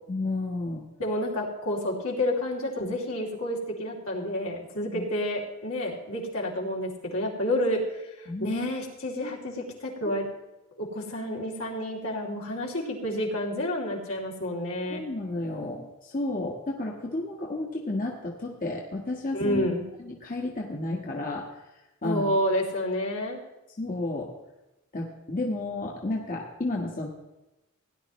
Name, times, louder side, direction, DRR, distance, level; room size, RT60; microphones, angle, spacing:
voice 1, 0.1-0.8 4.9-5.0 8.3-8.7 9.2-9.3 14.9-19.7 20.0-21.7 22.0-22.3 23.8-24.3 24.9-27.1, left 2 dB, 40° left, -1 dB, 1.4 m, -32 dB
voice 2, 1.0-7.8 8.2-10.3 10.8-15.0 19.3-19.8 22.0-23.4, left 1 dB, 75° left, -2 dB, 3.0 m, -29 dB
17.0 x 10.5 x 3.1 m, 0.99 s
head